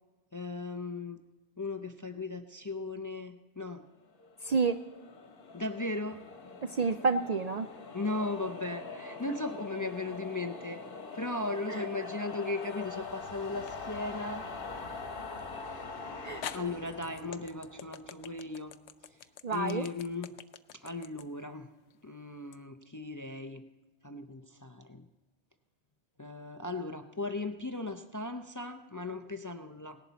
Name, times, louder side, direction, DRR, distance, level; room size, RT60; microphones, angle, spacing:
voice 1, 0.3-1.2 1.6-3.8 5.5-6.3 7.9-10.8 11.1-15.0 15.6-15.8 16.5-18.7 19.1-19.2 19.5-20.4 20.7-21.7 22.0-23.6 24.0-25.1 26.2-30.0, left 2 dB, 25° left, 7 dB, 0.4 m, -37 dB
sound 1, 4.2-18.5, left 3 dB, 55° left, 1.3 m, -43 dB
voice 2, 4.4-4.8 6.6-7.7 11.7-11.8 16.2-16.4 19.4-19.9, right 4 dB, 55° right, 8 dB, 0.5 m, -29 dB
sound 2, 12.3-12.9 13.7-13.8 15.7-15.8 16.4-22.6, left 9 dB, 85° left, 0.9 m, -46 dB
18.0 x 11.0 x 4.1 m, 1.2 s
omnidirectional pair, 1.1 m